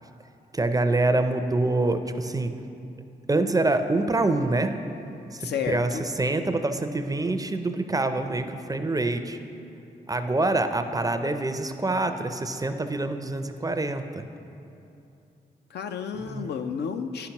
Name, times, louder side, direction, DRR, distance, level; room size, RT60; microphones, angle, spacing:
voice 1, 0.5-2.5 3.3-4.7 5.3-9.4 10.1-14.2 16.2-16.5, right 2 dB, 20° right, 8 dB, 0.4 m, -26 dB
voice 2, 5.4-6.0 15.7-17.3, left 7 dB, 70° left, 7 dB, 0.4 m, -31 dB
9.6 x 5.7 x 2.9 m, 2.7 s
supercardioid pair, 45°, 18 cm